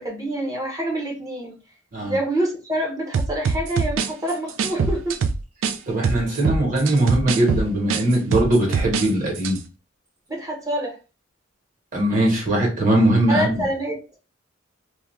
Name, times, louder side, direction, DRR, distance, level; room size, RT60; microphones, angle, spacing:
voice 1, 0.0-1.6 2.0-5.2 10.3-11.0 13.3-14.0, right 1 dB, 20° right, 0.7 m, -26 dB
sound 1, 3.1-5.8 6.0-9.1 9.4-9.6, right 5 dB, 75° right, 0.3 m, -23 dB
voice 2, 5.9-9.6 11.9-13.5, right 1 dB, 45° right, 1.1 m, -20 dB
2.4 x 2.3 x 3.0 m
head